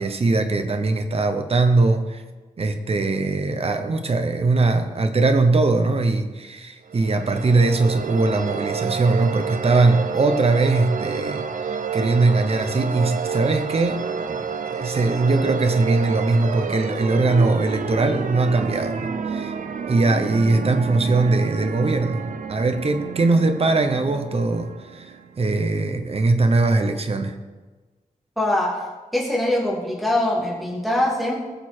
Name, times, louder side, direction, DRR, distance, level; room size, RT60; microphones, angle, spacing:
voice 1, 0.0-2.2 2.6-19.5 19.9-27.4, right 3 dB, 45° right, 7 dB, 1.0 m, -21 dB
sound 1, 6.9-25.5, right 6 dB, 65° right, 0.7 m, -30 dB
voice 2, 28.4-28.7 29.1-31.3, left 1 dB, ahead, -4 dB, 2.9 m, -22 dB
19.5 x 6.8 x 4.5 m, 1.3 s
wide cardioid pair, 180°, 14 cm